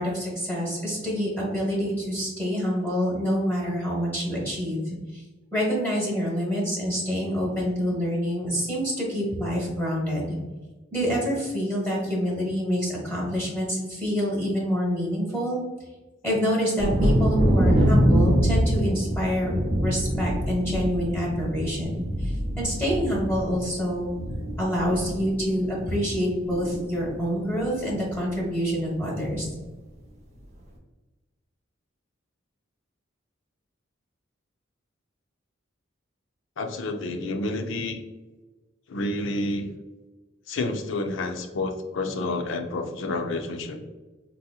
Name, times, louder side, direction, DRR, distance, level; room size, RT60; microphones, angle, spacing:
voice 1, 0.0-5.2 5.5-10.4 10.9-15.6 16.2-19.5 19.8-24.1 24.6-29.4, equal, 10° left, -5 dB, 1.0 m, -27 dB
Thunder, 16.8-26.2 26.5-27.2 27.6-27.7 28.1-28.3, equal, 35° right, 0.6 m, -25 dB
voice 2, 36.6-38.0 38.9-39.7 40.5-43.8, left 2 dB, 70° left, 5 dB, 0.4 m, -29 dB
4.0 x 2.7 x 2.3 m, 1.2 s
head